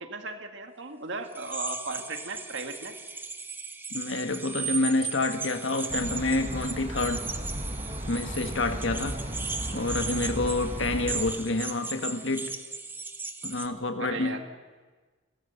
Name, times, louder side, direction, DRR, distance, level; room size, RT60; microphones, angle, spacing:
voice 1, 0.0-2.9 14.0-14.4, right 3 dB, 70° right, 5 dB, 2.0 m, -36 dB
sound 1, 1.3-13.7, right 4 dB, 10° right, 0.9 m, -37 dB
voice 2, 3.9-7.2 8.1-9.2 9.7-12.5 13.4-14.4, left 2 dB, 75° left, 7 dB, 1.6 m, -28 dB
sound 2, 5.9-11.3, right 1 dB, 35° right, 2.0 m, -35 dB
29.5 x 13.0 x 7.1 m, 1.4 s
head